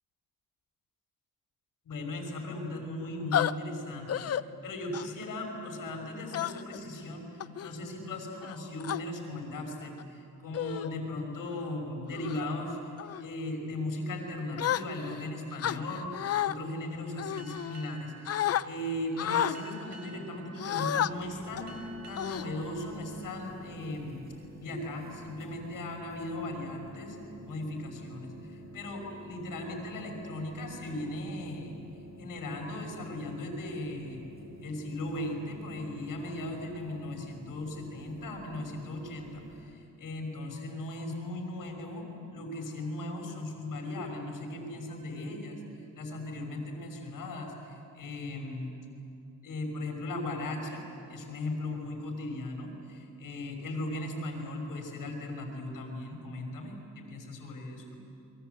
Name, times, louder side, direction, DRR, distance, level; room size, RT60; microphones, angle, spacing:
voice 1, 1.8-4.3 4.6-12.8 13.2-21.8 22.1-24.2 24.6-27.2 27.4-31.7 32.2-34.2 34.6-45.6 45.9-48.7 49.4-58.0, left 1 dB, 80° left, 2 dB, 5.8 m, -37 dB
sound 1, 3.3-3.5 4.1-4.4 4.9-5.2 6.3-6.8 7.4-7.7 8.4-9.0 9.8-10.0 10.5-10.9 11.4-11.6 12.1-12.5 13.0-13.2 14.6-15.2 15.6-16.5 17.2-18.0 18.3-18.6 19.2-19.6 20.6-21.1 21.6-21.7 22.2-22.8, left 10 dB, 50° left, 0.6 m, -31 dB
Boat Water vehicle, 17.4-24.4, right 4 dB, 55° right, 3.7 m, -54 dB
sound 2, 21.1-39.6, equal, 30° right, 4.8 m, -49 dB
29.5 x 23.5 x 8.2 m, 2.8 s
wide cardioid pair, 175°, 33 cm